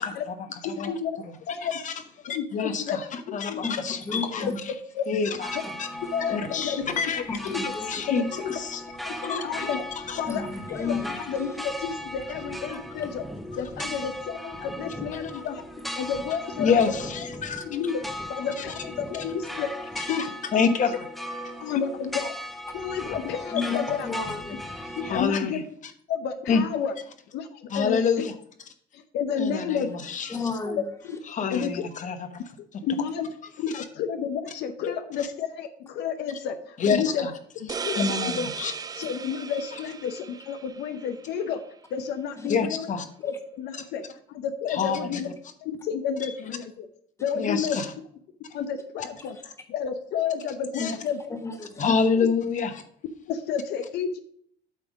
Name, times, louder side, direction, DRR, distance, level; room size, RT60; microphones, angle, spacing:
voice 1, 0.0-0.9 1.2-1.3 1.7-1.9 2.3-4.5 5.1-5.9 6.3-7.5 7.9-8.8 9.2-9.4 10.1-10.2 12.7-12.8 16.6-17.7 18.6-18.7 20.0-21.0 23.6-23.7 25.0-25.6 26.5-26.6 27.7-28.3 29.4-30.5 31.3-32.3 33.7-33.8 35.2-35.3 36.8-37.3 38.0-38.7 42.5-43.0 43.8-43.9 44.7-45.2 46.2-46.3 47.4-47.9 48.4-48.5 50.7-51.0 51.8-52.8, left 5 dB, 50° left, 8 dB, 1.1 m, -27 dB
voice 2, 0.6-1.2 1.5-1.7 2.3-3.0 3.3-3.6 4.4-4.5 4.9-5.0 6.1-6.8 7.1-7.7 8.0-8.5 9.1-9.8 10.2-11.0 11.3-13.2 13.6-15.6 15.9-16.7 17.7-18.0 18.3-19.7 20.1-20.2 21.6-22.3 22.7-24.1 25.0-25.6 26.1-26.9 27.3-28.2 28.9-29.9 30.6-31.2 31.5-31.8 32.8-33.3 33.6-37.3 37.6-38.5 38.9-41.6 41.9-42.9 43.2-45.3 45.6-46.9 47.2-47.8 48.5-51.4 53.3-54.2, left 7 dB, 80° left, 8 dB, 0.8 m, -31 dB
voice 3, 4.1-4.6 7.3-8.0 10.3-10.5 10.8-11.2 23.5-23.8 24.0-25.0 30.3-30.8 49.2-49.3 50.8-51.0 51.4-51.8, left 4 dB, 15° left, 5 dB, 1.3 m, -32 dB
sound 1, 5.4-25.2, left 1 dB, ahead, 1.0 m, -37 dB
sound 2, 37.7-41.1, right 6 dB, 25° right, 0.4 m, -35 dB
8.5 x 3.5 x 6.2 m, 0.64 s
cardioid pair, 110°, 17 cm